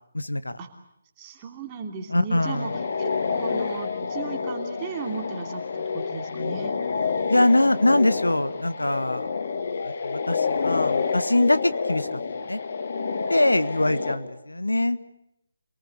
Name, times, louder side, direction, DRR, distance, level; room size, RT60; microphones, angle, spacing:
voice 1, 0.1-0.6 2.1-2.7 7.3-9.3 9.8-12.2 12.5-12.6 13.3-15.0, left 1 dB, 90° left, 13 dB, 1.4 m, -23 dB
voice 2, 1.2-6.8, right 5 dB, 25° right, 3 dB, 3.0 m, -36 dB
sound 1, 2.4-14.2, left 5 dB, 50° left, 2.6 m, -28 dB
27.5 x 19.0 x 8.2 m, 0.83 s
figure-of-eight pair, 150°, 0 cm